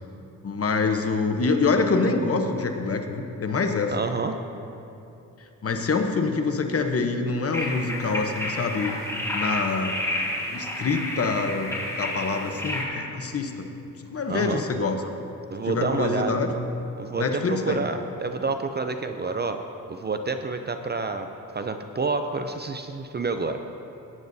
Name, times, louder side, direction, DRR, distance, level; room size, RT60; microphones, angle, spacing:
voice 1, 0.4-3.9 5.6-8.9 9.3-10.0 10.5-11.7 12.0-13.7 14.1-15.1 15.6-16.5 17.2-17.8, left 4 dB, 40° left, 5 dB, 0.9 m, -25 dB
voice 2, 3.9-4.3 14.3-14.6 15.5-16.4 17.0-19.6 19.9-21.3 21.5-23.6, right 4 dB, 30° right, 7 dB, 0.5 m, -28 dB
sound 1, 7.5-12.8, left 1 dB, 10° left, 2.0 m, -30 dB
17.0 x 9.3 x 2.7 m, 2.9 s
cardioid pair, 95°, 35 cm